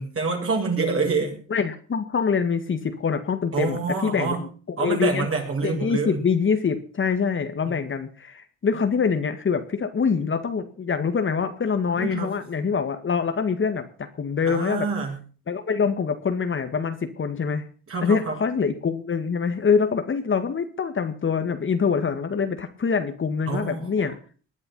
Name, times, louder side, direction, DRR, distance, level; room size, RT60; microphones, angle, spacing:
voice 1, 0.0-1.4 3.5-4.4 4.8-6.2 7.7-7.8 12.0-12.3 14.5-15.2 17.9-18.3 23.5-23.9, right 4 dB, 45° right, 0 dB, 7.8 m, -26 dB
voice 2, 1.5-5.3 5.6-14.9 15.5-17.6 18.0-24.1, left 5 dB, 40° left, 8 dB, 1.9 m, -25 dB
20.0 x 9.7 x 5.5 m, 0.40 s
cardioid pair, 90°, 30 cm